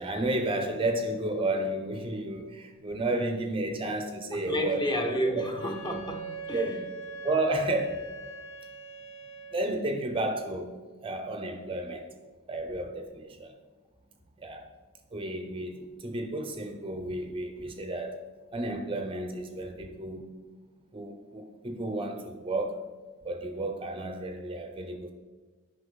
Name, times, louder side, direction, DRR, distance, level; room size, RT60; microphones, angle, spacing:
voice 1, 0.0-4.9 5.4-5.5 6.5-6.7 7.2-8.0 9.5-10.7 11.0-12.1 12.5-13.5 14.4-14.7 15.1-18.2 18.5-20.3 20.9-22.8 23.2-25.1, right 1 dB, 25° right, 0.5 m, -32 dB
voice 2, 4.3-6.9, right 1 dB, 20° left, 0.8 m, -31 dB
Wind instrument woodwind instrument, 5.0-9.7, right 4 dB, 65° left, 0.7 m, -42 dB
9.3 x 5.5 x 3.9 m
head